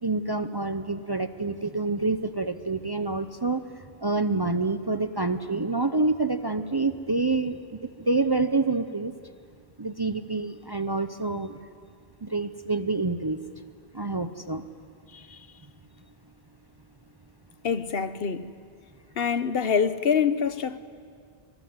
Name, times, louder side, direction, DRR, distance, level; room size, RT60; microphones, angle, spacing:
voice 1, 0.0-3.6 4.0-9.1 9.8-11.6 12.2-13.4 13.9-14.6, right 3 dB, 25° right, 0.6 m, -27 dB
voice 2, 15.1-15.5 17.6-18.5 19.2-20.8, left 6 dB, 70° left, 1.2 m, -26 dB
26.0 x 21.0 x 9.6 m
omnidirectional pair, 1.0 m